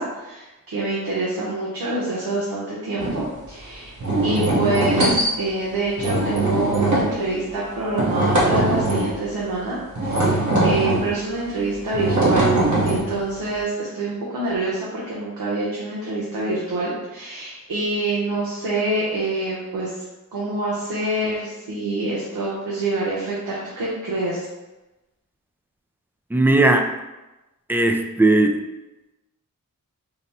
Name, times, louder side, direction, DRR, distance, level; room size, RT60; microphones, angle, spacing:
voice 1, 0.0-4.0 4.2-12.5 12.8-20.0 20.3-24.5, right 2 dB, 90° right, -6 dB, 0.9 m, -26 dB
sound 1, 3.0-3.2 4.0-5.3 6.0-7.2 8.0-9.2 9.9-11.1 11.9-13.3, right 2 dB, 60° right, 1.1 m, -20 dB
voice 2, 26.3-26.9 27.7-28.6, right 2 dB, 5° right, 5 dB, 0.3 m, -17 dB
4.0 x 2.1 x 4.1 m, 1.0 s
wide cardioid pair, 65°, 34 cm